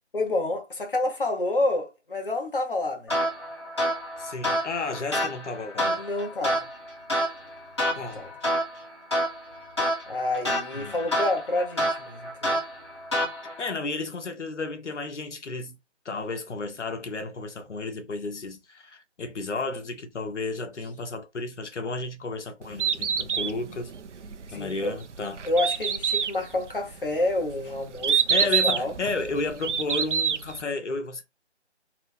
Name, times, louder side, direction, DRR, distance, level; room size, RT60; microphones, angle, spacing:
voice 1, 0.1-3.1 5.8-6.7 8.0-8.3 10.1-12.6 24.5-25.0 25.4-28.2 28.6-28.9, left 2 dB, 50° left, 0.7 m, -28 dB
sound 1, 3.1-13.7, equal, 25° left, 1.3 m, -29 dB
voice 2, 4.2-6.1 7.9-8.2 10.7-11.0 13.4-15.8 16.0-23.9 24.5-25.4 28.1-31.2, left 3 dB, 80° left, 0.8 m, -33 dB
Bird, 22.6-30.6, right 7 dB, 90° right, 0.5 m, -27 dB
3.0 x 2.0 x 3.2 m
figure-of-eight pair, 175°, 35 cm